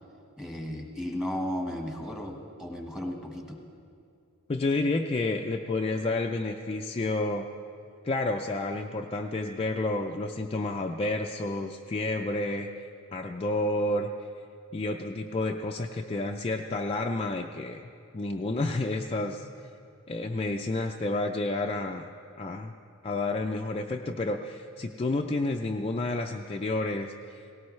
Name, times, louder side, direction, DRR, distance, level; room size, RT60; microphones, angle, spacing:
voice 1, 0.4-3.6, left 1 dB, 5° right, 1 dB, 1.4 m, -34 dB
voice 2, 4.5-7.5 8.0-12.7 13.1-14.1 14.7-17.8 18.1-19.5 20.1-22.1 22.4-22.7 23.0-27.1, left 2 dB, 25° left, 2 dB, 0.4 m, -30 dB
18.0 x 17.5 x 3.2 m, 2.4 s
head